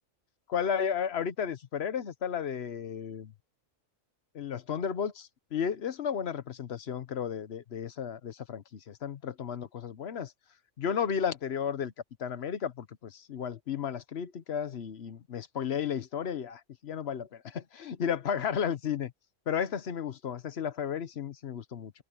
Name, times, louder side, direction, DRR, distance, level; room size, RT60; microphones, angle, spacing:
voice 1, 0.5-3.3 4.3-10.3 10.8-11.9 12.2-19.1 19.5-21.9, left 7 dB, 55° left, 1.1 m, -33 dB
omnidirectional pair, 1.3 m